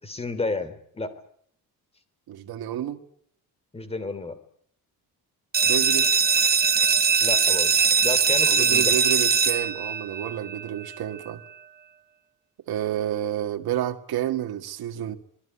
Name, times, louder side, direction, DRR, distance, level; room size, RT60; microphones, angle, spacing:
voice 1, 0.0-1.1 3.7-4.4 7.2-7.7 8.0-8.9, left 3 dB, 15° left, 3.2 m, -31 dB
voice 2, 2.3-3.0 5.6-6.1 8.5-11.4 12.7-15.2, right 11 dB, 75° right, 2.0 m, -29 dB
sound 1, 5.5-11.0, right 6 dB, 25° right, 1.3 m, -21 dB
26.5 x 19.5 x 9.8 m
cardioid pair, 170°, 38 cm